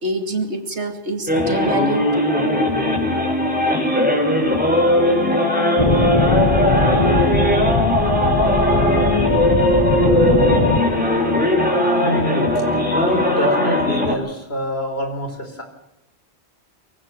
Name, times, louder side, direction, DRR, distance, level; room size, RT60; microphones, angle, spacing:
voice 1, 0.0-2.1, right 2 dB, 75° right, 6 dB, 2.8 m, -25 dB
sound 1, 1.3-14.1, left 1 dB, 10° right, 5.1 m, -18 dB
sound 2, 5.8-10.8, left 3 dB, 35° left, 1.2 m, -20 dB
voice 2, 11.9-12.6 13.0-15.6, equal, 65° left, 5 dB, 4.9 m, -26 dB
23.5 x 16.5 x 7.7 m, 0.86 s
omnidirectional pair, 1.1 m